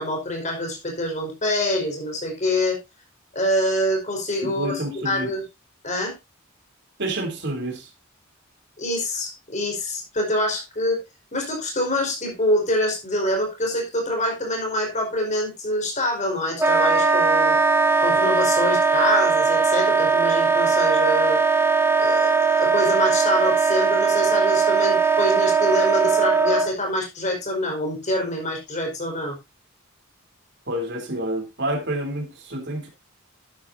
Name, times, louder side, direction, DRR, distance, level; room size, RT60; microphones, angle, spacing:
voice 1, 0.0-2.8 3.3-5.5 5.8-6.1 8.8-11.0 11.3-17.6 18.0-21.4 22.0-29.4, left 1 dB, 35° left, 5.1 m, -25 dB
voice 2, 4.4-5.3 7.0-7.9 30.7-32.9, right 1 dB, 55° right, 3.5 m, -28 dB
Wind instrument woodwind instrument, 16.6-26.7, right 5 dB, 10° right, 1.0 m, -19 dB
12.0 x 10.0 x 2.8 m
head